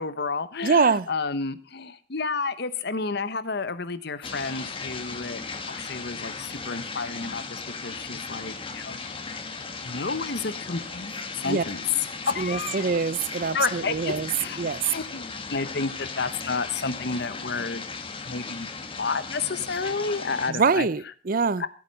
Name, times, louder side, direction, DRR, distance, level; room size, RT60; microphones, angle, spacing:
voice 1, 0.0-5.4 5.7-9.0 9.8-11.8 12.3-12.8 13.5-15.2 15.5-17.8 18.2-18.7 19.0-20.9 21.6-21.7, left 4 dB, 60° left, 14 dB, 1.0 m, -31 dB
voice 2, 0.6-1.1 11.4-11.6 12.4-14.3 14.6-14.8 20.5-21.6, right 5 dB, 45° right, 19 dB, 0.5 m, -24 dB
sound 1, 4.2-20.5, left 4 dB, 30° left, 1.5 m, -37 dB
15.0 x 8.7 x 5.5 m, 0.39 s
head